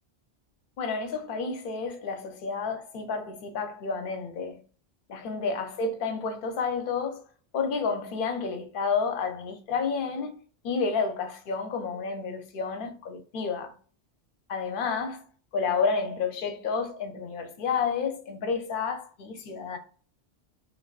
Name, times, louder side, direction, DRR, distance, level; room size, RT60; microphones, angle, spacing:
voice 1, 0.8-4.6 5.1-7.2 7.5-10.4 10.6-13.7 14.5-15.2 15.5-19.8, left 5 dB, 60° left, 0.6 m, -30 dB
2.4 x 2.3 x 2.3 m
omnidirectional pair, 1.1 m